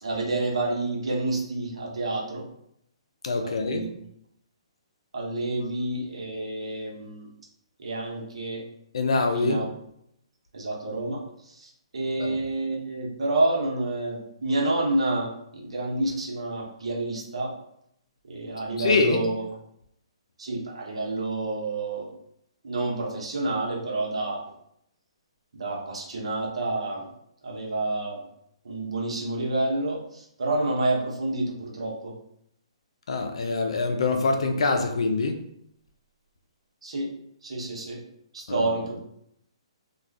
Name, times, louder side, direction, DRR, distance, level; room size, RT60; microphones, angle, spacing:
voice 1, 0.0-2.4 3.4-3.9 5.1-7.3 7.8-8.6 9.3-9.7 10.5-17.5 18.3-19.4 20.4-22.1 22.6-24.4 25.5-27.1 27.4-28.2 28.6-32.1 36.8-37.1 37.4-38.0 38.3-39.0, right 2 dB, 75° right, -2 dB, 0.9 m, -29 dB
voice 2, 3.2-3.8 8.9-9.6 12.2-12.3 18.8-19.2 33.1-35.3 38.5-38.7, left 3 dB, 70° left, 4 dB, 0.5 m, -24 dB
2.4 x 2.3 x 3.3 m, 0.74 s
hypercardioid pair, 145°, 3 cm